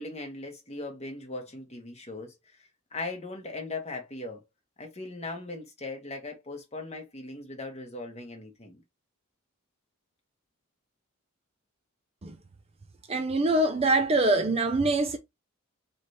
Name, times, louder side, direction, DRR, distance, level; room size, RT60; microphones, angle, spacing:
voice 1, 0.0-4.4 4.8-8.8, left 2 dB, 30° left, 1.3 m, -39 dB
voice 2, 13.1-15.2, right 2 dB, 30° right, 0.5 m, -24 dB
3.2 x 3.1 x 4.1 m
head